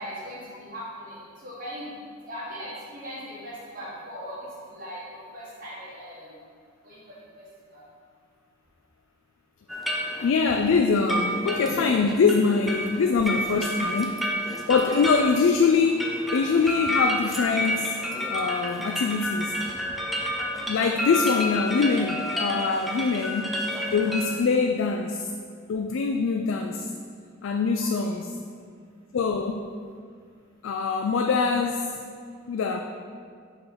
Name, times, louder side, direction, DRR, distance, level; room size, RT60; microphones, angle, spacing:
voice 1, 0.0-1.9 2.3-4.4 4.7-6.3 6.8-7.4 7.7-7.8 27.7-28.2, equal, 45° right, -6 dB, 1.8 m, -39 dB
sound 1, 9.7-24.2, equal, ahead, 0.5 m, -30 dB
voice 2, 10.2-14.2 14.7-18.0 18.3-19.6 20.7-23.6 23.9-25.3 25.7-26.9 27.4-28.2 29.1-29.7 30.6-31.9 32.5-32.8, left 4 dB, 65° left, 4 dB, 0.3 m, -23 dB
5.4 x 4.4 x 5.6 m, 2.1 s
head